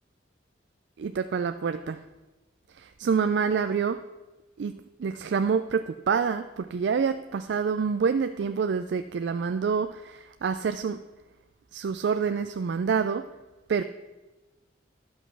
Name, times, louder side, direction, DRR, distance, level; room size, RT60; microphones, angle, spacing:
voice 1, 1.0-2.0 2.8-4.0 4.6-4.7 5.0-11.0 11.7-13.3 13.7-13.8, right 6 dB, 70° right, 10 dB, 0.4 m, -27 dB
11.0 x 6.2 x 6.0 m, 1.1 s
head